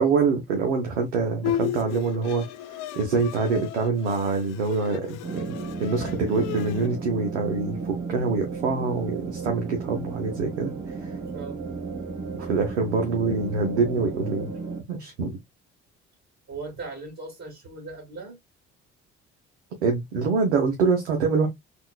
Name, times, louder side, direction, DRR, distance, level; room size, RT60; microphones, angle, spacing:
voice 1, 0.0-2.4 2.7-5.4 5.8-10.7 11.0-11.2 12.4-14.5 14.9-15.4 19.8-21.5, right 4 dB, 90° right, 0.6 m, -25 dB
Bowed string instrument, 1.4-6.9, left 12 dB, 65° left, 0.5 m, -34 dB
sound 1, 5.2-14.8, right 4 dB, 60° right, 1.2 m, -34 dB
voice 2, 16.5-18.4, right 3 dB, 35° right, 1.7 m, -38 dB
3.7 x 2.4 x 2.3 m
hypercardioid pair, 50°, 34 cm